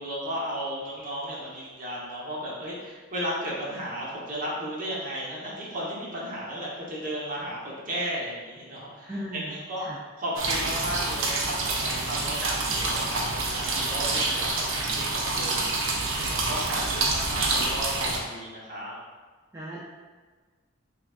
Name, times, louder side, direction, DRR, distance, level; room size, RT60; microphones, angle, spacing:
voice 1, 0.0-9.8 10.2-19.0, equal, 45° right, -6 dB, 1.0 m, -34 dB
voice 2, 9.1-10.0 17.0-17.1 19.5-19.8, equal, 15° right, -8 dB, 0.4 m, -37 dB
sound 1, 10.4-18.2, right 3 dB, 75° right, 0.6 m, -27 dB
5.7 x 2.4 x 2.4 m, 1.4 s
head